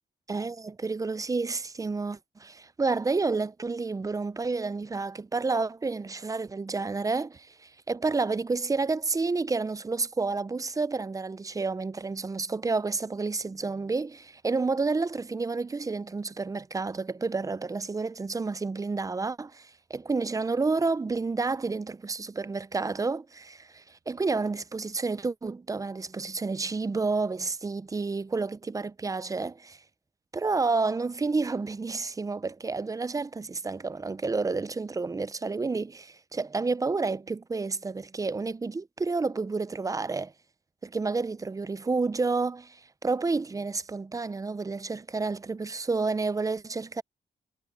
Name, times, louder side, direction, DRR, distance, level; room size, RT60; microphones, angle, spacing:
voice 1, 0.3-29.8 30.3-40.3 40.8-47.0, right 3 dB, 20° right, 0.4 m, -30 dB
wide cardioid pair, 130°, 18 cm